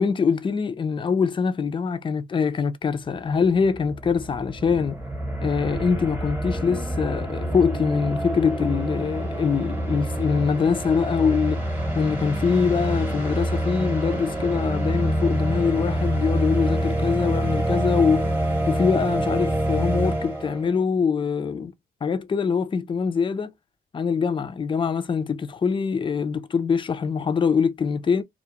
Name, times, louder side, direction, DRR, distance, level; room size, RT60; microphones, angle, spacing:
voice 1, 0.0-5.0 5.4-11.6 11.9-18.3 18.7-21.7 22.0-23.5 23.9-28.2, left 6 dB, 25° left, 0.4 m, -23 dB
sound 1, 3.0-3.1 3.3-20.7, right 1 dB, 10° right, 1.0 m, -26 dB
2.3 x 2.1 x 2.9 m
cardioid pair, 90°, 20 cm